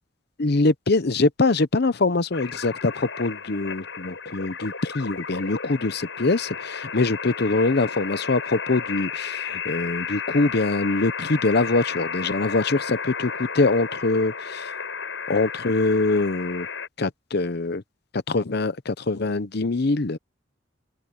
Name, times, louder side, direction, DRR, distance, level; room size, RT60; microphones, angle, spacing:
voice 1, 0.4-14.7 15.3-16.7 17.0-17.8 18.1-20.2, left 3 dB, 55° left, 0.8 m, -23 dB
sound 1, 2.3-16.9, left 6 dB, 75° left, 6.8 m, -33 dB
open air
head